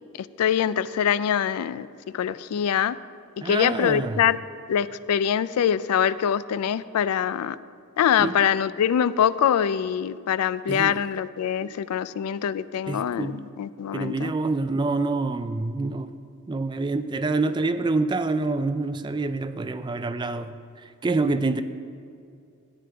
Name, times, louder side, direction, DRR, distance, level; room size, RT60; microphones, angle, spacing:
voice 1, 0.2-3.0 3.4-4.4 4.7-7.6 8.0-14.3, left 8 dB, 90° left, 16 dB, 0.3 m, -24 dB
voice 2, 3.4-4.2 8.2-8.4 10.7-11.0 11.6-11.7 12.9-13.4 13.9-16.1 16.5-21.6, right 3 dB, 20° right, 11 dB, 0.3 m, -27 dB
13.5 x 9.2 x 3.4 m, 2.4 s
head